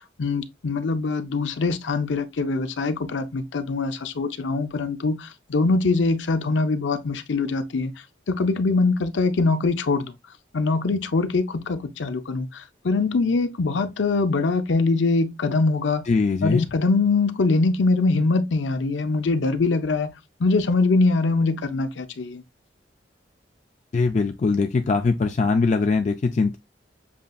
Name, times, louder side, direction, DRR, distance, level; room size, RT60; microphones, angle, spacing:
voice 1, 0.2-7.9 8.3-10.1 10.5-16.1 16.4-20.1 20.4-22.4, left 3 dB, 90° left, 0.6 m, -23 dB
voice 2, 16.1-16.7 23.9-26.6, left 4 dB, 40° left, 0.3 m, -21 dB
7.1 x 2.5 x 2.3 m
head